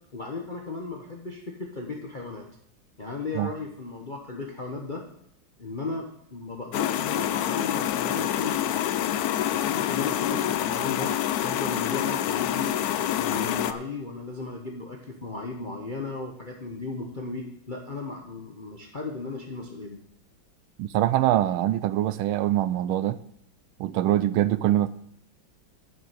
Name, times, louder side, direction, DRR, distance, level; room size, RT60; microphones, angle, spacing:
voice 1, 0.1-2.4 3.0-5.0 5.6-8.8 9.5-12.8 13.1-20.0, left 3 dB, 30° left, 0.9 m, -35 dB
sound 1, 6.7-13.7, left 11 dB, 80° left, 0.8 m, -27 dB
voice 2, 20.8-23.2 23.8-24.9, right 13 dB, 85° right, 1.4 m, -23 dB
7.8 x 7.2 x 8.1 m
omnidirectional pair, 2.2 m